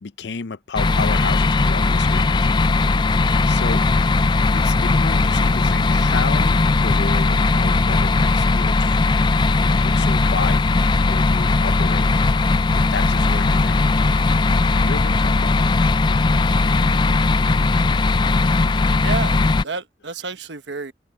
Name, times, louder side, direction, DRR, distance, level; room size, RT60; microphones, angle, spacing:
voice 1, 0.0-2.6 3.5-3.8 4.5-9.2 9.5-10.6 11.0-12.3 12.7-13.8 14.7-15.8, left 5 dB, 70° left, 0.6 m, -32 dB
sound 1, 0.8-19.6, left 3 dB, 25° left, 0.3 m, -18 dB
voice 2, 18.4-20.9, right 4 dB, 75° right, 1.2 m, -31 dB
head